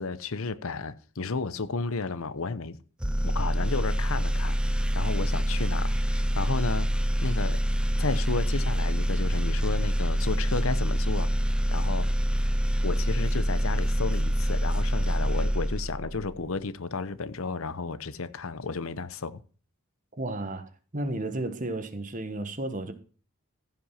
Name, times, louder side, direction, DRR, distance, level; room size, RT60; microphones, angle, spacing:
voice 1, 0.0-2.8 3.2-4.6 4.9-6.9 7.2-7.6 8.0-11.3 11.7-12.1 12.8-19.4, left 4 dB, 70° left, 0.8 m, -32 dB
sound 1, 3.0-16.4, equal, 5° right, 0.5 m, -26 dB
voice 2, 20.2-22.9, right 1 dB, 35° right, 1.4 m, -33 dB
15.0 x 5.8 x 5.7 m
head